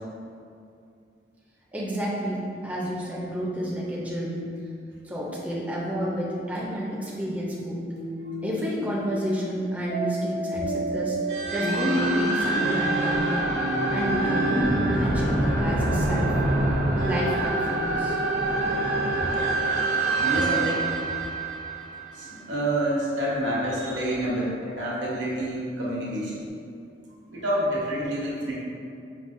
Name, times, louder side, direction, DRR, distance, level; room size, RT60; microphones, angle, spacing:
voice 1, 1.7-4.4 5.0-7.8 8.4-11.2 11.5-13.3 13.9-16.3 17.0-18.2, equal, 10° right, -5 dB, 0.4 m, -29 dB
sound 1, 8.0-8.8 9.9-14.9, right 1 dB, 65° left, 1.1 m, -30 dB
sound 2, 11.3-22.5, right 2 dB, 55° right, 0.6 m, -26 dB
voice 2, 20.2-20.9 22.1-26.5 27.3-28.5, right 1 dB, 85° right, -6 dB, 0.9 m, -28 dB
5.2 x 2.0 x 2.5 m, 2.5 s
head